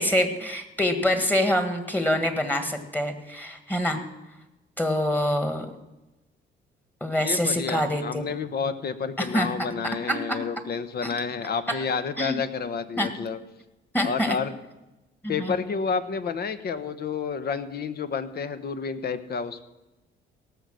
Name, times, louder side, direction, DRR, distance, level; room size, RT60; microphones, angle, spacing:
voice 1, 0.0-4.0 4.8-5.7 7.0-8.2 9.2-9.5 10.1-10.4 11.0-11.1 11.7-11.8 12.2-12.4 13.0-13.1 13.9-14.4 15.2-15.5, left 1 dB, 10° left, 7 dB, 1.7 m, -25 dB
voice 2, 7.2-13.4 14.0-14.5 15.3-19.6, left 5 dB, 55° left, 11 dB, 1.0 m, -30 dB
17.5 x 6.9 x 6.4 m, 1.0 s
cardioid pair, 90°, 20 cm